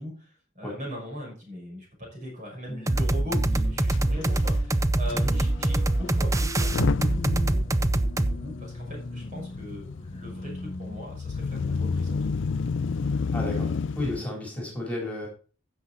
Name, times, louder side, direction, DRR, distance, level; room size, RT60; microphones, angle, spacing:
voice 1, 0.0-12.2, equal, 40° right, -1 dB, 5.9 m, -40 dB
sound 1, 2.7-12.6, left 1 dB, 30° left, 0.8 m, -41 dB
sound 2, 2.9-8.4, right 1 dB, 15° right, 0.6 m, -24 dB
Motor vehicle (road) / Engine starting / Accelerating revving vroom, 3.9-4.5 5.1-5.2 6.5-14.2, left 4 dB, 65° left, 0.5 m, -30 dB
voice 2, 13.3-15.3, left 1 dB, 10° left, -2 dB, 3.6 m, -32 dB
15.5 x 6.3 x 4.1 m, 0.37 s
head